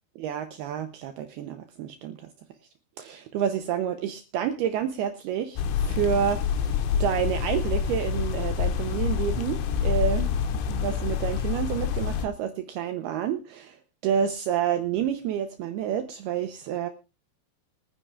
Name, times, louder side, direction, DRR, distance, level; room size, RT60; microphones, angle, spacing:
voice 1, 0.2-2.3 3.0-10.3 10.7-16.9, right 9 dB, 90° right, 7 dB, 2.2 m, -29 dB
sound 1, 5.6-12.3, left 7 dB, 90° left, 3.6 m, -27 dB
25.0 x 9.5 x 2.4 m, 0.29 s
omnidirectional pair, 5.6 m